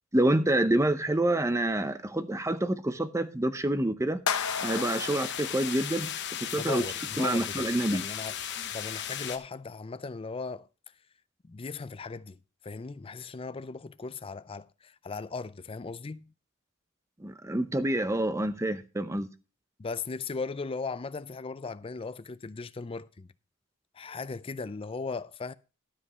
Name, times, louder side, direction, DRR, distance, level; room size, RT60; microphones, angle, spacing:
voice 1, 0.1-4.2 4.6-6.8 7.2-8.0 17.2-19.3, right 1 dB, 15° right, 0.7 m, -27 dB
sound 1, 4.3-6.5, left 7 dB, 80° left, 0.9 m, -34 dB
sound 2, 4.3-9.4, left 10 dB, 55° left, 1.0 m, -36 dB
voice 2, 6.6-8.4 8.7-10.7 11.4-12.4 12.6-16.3 19.8-23.3 23.9-25.5, left 4 dB, 25° left, 0.4 m, -37 dB
12.5 x 5.2 x 5.4 m
head